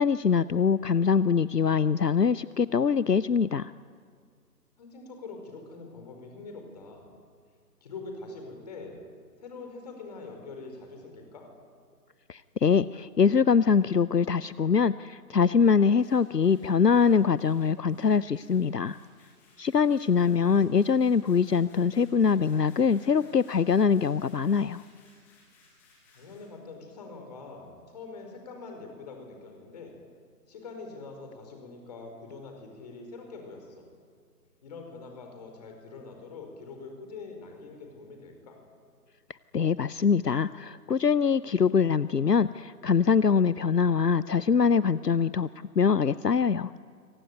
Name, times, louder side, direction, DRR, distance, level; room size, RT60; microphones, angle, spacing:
voice 1, 0.0-3.7 12.3-19.0 19.6-24.8 39.5-45.5 45.8-46.7, left 6 dB, 70° left, 17 dB, 0.8 m, -23 dB
voice 2, 4.8-7.1 7.8-9.0 9.4-11.5 26.1-30.0 30.5-33.8 34.6-38.6, left 3 dB, 25° left, 3 dB, 4.9 m, -44 dB
sound 1, 16.0-26.6, left 3 dB, 5° left, 1.5 m, -62 dB
27.0 x 24.0 x 9.4 m, 2.1 s
figure-of-eight pair, 150°, 49 cm